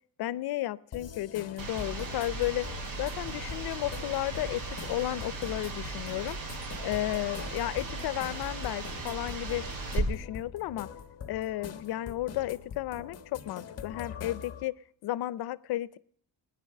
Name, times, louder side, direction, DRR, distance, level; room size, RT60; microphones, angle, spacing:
voice 1, 0.2-2.7 3.0-4.6 4.9-6.4 6.8-9.7 9.9-10.9 11.3-14.8 15.0-16.0, left 15 dB, 90° left, 20 dB, 0.6 m, -33 dB
sound 1, 0.9-14.6, left 7 dB, 40° left, 1.4 m, -44 dB
sound 2, 1.6-10.0, right 3 dB, 60° right, 5.1 m, -37 dB
20.5 x 10.5 x 6.6 m, 0.64 s
cardioid pair, 140°, 37 cm